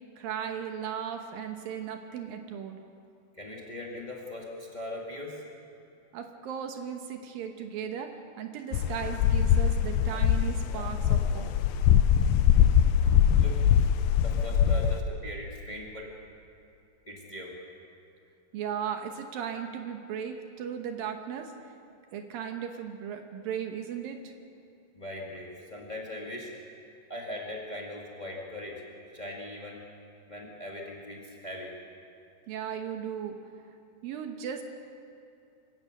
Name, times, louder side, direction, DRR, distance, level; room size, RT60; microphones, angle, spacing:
voice 1, 0.2-2.8 6.1-11.5 18.5-21.5 22.1-24.3 32.5-33.4 34.0-34.6, right 8 dB, 70° right, 5 dB, 2.5 m, -36 dB
voice 2, 3.3-5.4 13.4-13.6 14.2-16.1 17.1-17.6 24.9-26.5 27.1-28.8 29.1-29.8 30.3-31.7, left 1 dB, 30° left, -2 dB, 0.7 m, -40 dB
sound 1, 8.7-15.0, left 9 dB, 90° left, 2.0 m, -23 dB
26.5 x 16.5 x 6.6 m, 2.6 s
omnidirectional pair, 4.8 m